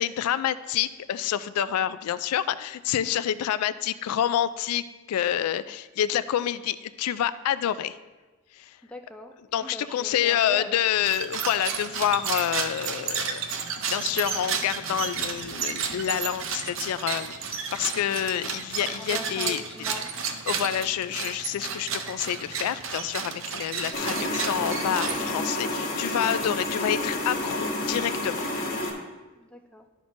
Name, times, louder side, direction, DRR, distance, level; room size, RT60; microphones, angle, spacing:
voice 1, 0.0-8.0 8.5-8.8 9.5-13.4 13.9-19.6 20.5-28.5, left 10 dB, 90° left, 16 dB, 0.3 m, -28 dB
voice 2, 8.9-10.8 19.0-20.1 29.3-29.9, left 1 dB, 5° left, 4 dB, 0.4 m, -41 dB
sound 1, 11.0-25.6, right 6 dB, 60° right, 0.6 m, -32 dB
sound 2, 23.9-28.9, left 1 dB, 40° left, 1.3 m, -29 dB
12.0 x 5.2 x 2.6 m, 1.2 s
head